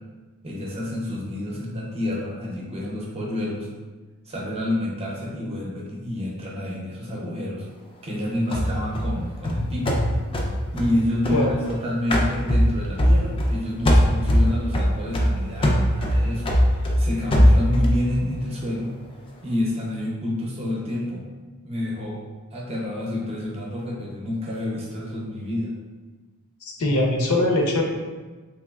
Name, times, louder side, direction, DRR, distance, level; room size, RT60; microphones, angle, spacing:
voice 1, 0.4-3.7 4.3-7.7 8.0-10.0 10.7-16.4 16.7-18.9 19.4-21.2 21.6-22.2 22.5-25.7, left 1 dB, 30° right, -3 dB, 0.6 m, -28 dB
sound 1, 8.5-11.7 12.1-13.6 13.8-18.0, equal, 25° left, 0.3 m, -20 dB
voice 2, 26.7-27.8, left 1 dB, 80° left, 0 dB, 0.6 m, -21 dB
3.3 x 3.0 x 2.3 m, 1.3 s
head